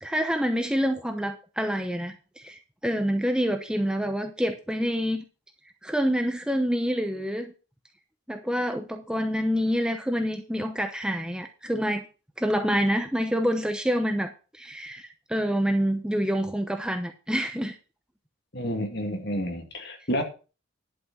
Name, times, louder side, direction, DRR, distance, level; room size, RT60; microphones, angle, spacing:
voice 1, 0.0-5.2 5.8-7.5 8.3-12.1 12.4-17.8, equal, 5° right, 6 dB, 0.8 m, -27 dB
voice 2, 18.5-20.2, equal, 50° left, 4 dB, 2.3 m, -30 dB
11.0 x 6.1 x 6.1 m, 0.33 s
head